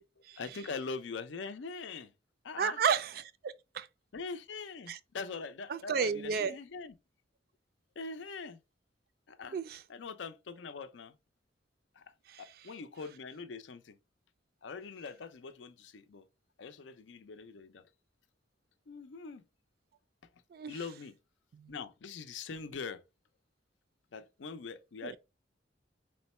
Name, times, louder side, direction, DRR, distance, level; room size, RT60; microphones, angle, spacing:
voice 1, 0.4-2.1 2.4-2.8 4.1-6.9 8.0-8.6 9.3-9.6 9.9-11.1 12.0-12.1 12.4-14.0 14.6-16.2 16.6-17.9 18.9-19.4 20.7-21.2 21.7-23.0 24.1-25.2, left 4 dB, 80° left, 0.5 m, -42 dB
voice 2, 2.6-3.9 4.9-5.0 5.7-6.6 9.5-9.8 12.3-12.7 20.5-20.8 21.5-21.8 25.0-25.2, right 6 dB, 55° right, 0.3 m, -33 dB
3.7 x 2.1 x 4.1 m
head